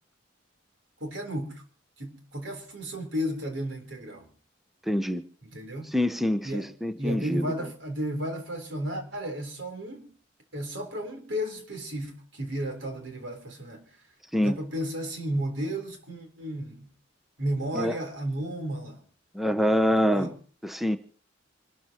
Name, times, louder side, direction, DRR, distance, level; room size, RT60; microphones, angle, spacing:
voice 1, 1.0-1.6 2.0-4.3 5.4-5.9 6.4-6.7 7.0-10.1 10.5-13.9 14.4-16.9 17.4-19.0 20.1-20.3, right 1 dB, 75° right, 3.9 m, -33 dB
voice 2, 4.9-5.2 5.9-7.5 14.3-14.6 17.7-18.0 19.3-20.3 20.6-21.0, equal, ahead, 0.7 m, -25 dB
26.5 x 13.0 x 3.0 m
head